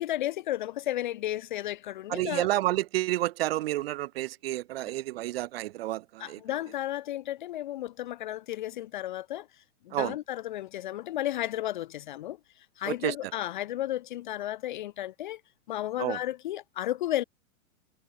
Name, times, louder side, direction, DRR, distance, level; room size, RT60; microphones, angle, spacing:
voice 1, 0.0-2.5 6.2-15.4 15.7-17.2, left 13 dB, 35° left, 0.5 m, -33 dB
voice 2, 2.1-6.4 9.9-10.1 12.8-13.1 16.0-16.2, right 16 dB, 45° right, 0.9 m, -30 dB
hypercardioid pair, 140°, 42 cm